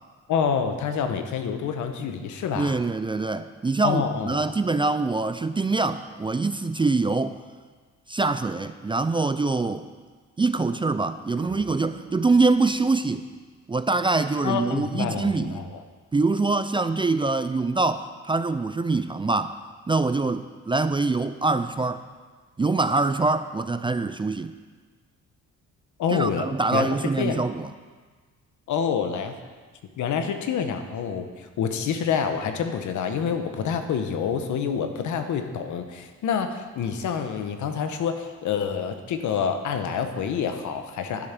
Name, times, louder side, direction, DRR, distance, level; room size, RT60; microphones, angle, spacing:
voice 1, 0.3-2.8 3.8-4.4 14.4-15.8 26.0-26.9 27.2-27.4 28.7-29.3 30.0-41.3, left 7 dB, 75° left, 7 dB, 1.1 m, -27 dB
voice 2, 2.6-7.4 8.1-9.9 10.4-13.3 13.7-15.7 16.1-19.6 19.9-22.1 22.6-24.5 26.1-27.7, right 3 dB, 15° right, 11 dB, 0.4 m, -24 dB
sound 1, 11.4-13.8, right 5 dB, 80° right, 2.1 m, -45 dB
11.0 x 7.9 x 6.0 m, 1.5 s
cardioid pair, 90°, 30 cm